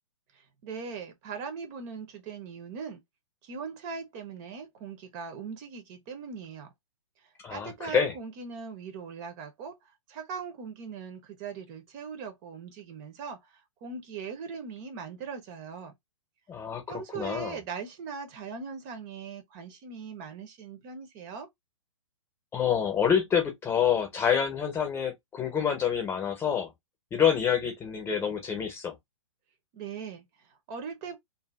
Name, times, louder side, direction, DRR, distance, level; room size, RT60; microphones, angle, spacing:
voice 1, 0.3-3.0 3.4-6.7 7.5-9.7 10.1-15.9 16.9-21.5 29.7-31.2, right 5 dB, 35° right, 0.8 m, -40 dB
voice 2, 7.4-8.1 16.5-17.6 22.5-26.7 27.1-28.9, left 8 dB, 15° left, 1.0 m, -27 dB
2.7 x 2.6 x 2.3 m
figure-of-eight pair, 120°, 17 cm